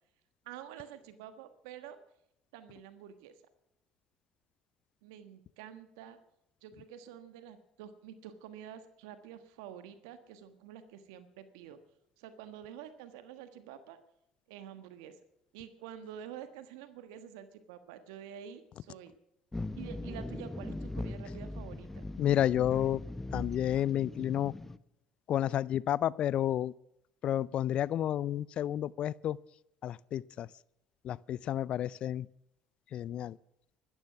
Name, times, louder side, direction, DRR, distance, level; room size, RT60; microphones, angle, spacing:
voice 1, 0.4-2.0 2.5-3.3 5.0-6.2 6.6-11.8 12.2-14.0 14.5-15.1 15.5-19.1 19.8-22.1, right 9 dB, 85° right, 1.3 m, -48 dB
sound 1, 19.5-24.8, left 2 dB, 15° left, 0.9 m, -40 dB
voice 2, 22.2-23.0 23.3-24.5 25.3-26.7 27.2-29.4 29.8-30.5 31.0-32.3 32.9-33.4, left 11 dB, 55° left, 0.4 m, -30 dB
15.0 x 13.5 x 5.9 m
hypercardioid pair, 70°, 2 cm